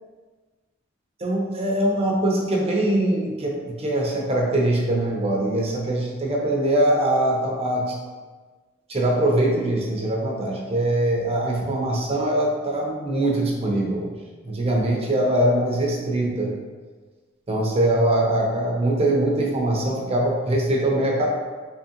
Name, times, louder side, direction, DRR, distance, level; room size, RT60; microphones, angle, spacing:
voice 1, 1.2-7.9 8.9-14.1 14.4-16.5 17.5-21.3, right 1 dB, 30° right, -1 dB, 0.6 m, -22 dB
3.6 x 3.0 x 2.9 m, 1.4 s
head